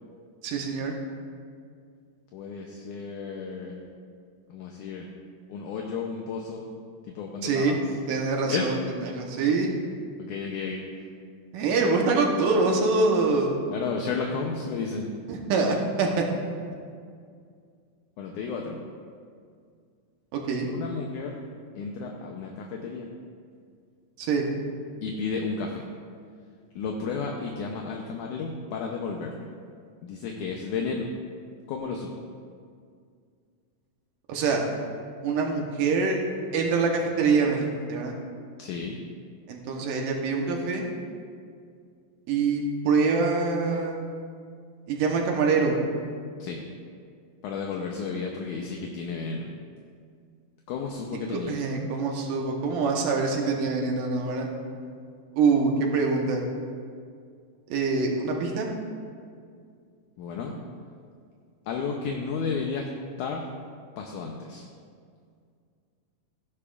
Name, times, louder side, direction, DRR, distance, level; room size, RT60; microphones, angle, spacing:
voice 1, 0.4-0.9 7.4-7.8 8.1-9.7 11.5-13.6 15.3-16.1 20.3-20.7 24.2-24.4 34.3-34.6 35.2-36.2 36.5-38.2 39.5-40.8 42.3-44.0 44.9-45.8 51.3-54.5 55.4-56.4 57.7-58.7, right 4 dB, 75° right, 0 dB, 2.5 m, -25 dB
voice 2, 2.3-3.9 4.5-5.1 5.5-6.7 7.2-7.8 8.5-8.7 10.2-10.8 13.7-15.1 18.2-18.8 20.7-21.4 21.8-23.1 25.0-25.8 26.8-29.3 30.0-31.1 31.7-32.1 38.6-39.0 46.4-46.6 47.4-49.5 50.7-51.6 60.2-60.5 61.7-62.9 63.2-63.5 64.0-64.7, left 5 dB, 75° left, 1 dB, 2.0 m, -32 dB
15.0 x 11.5 x 2.4 m, 2.2 s
omnidirectional pair, 4.1 m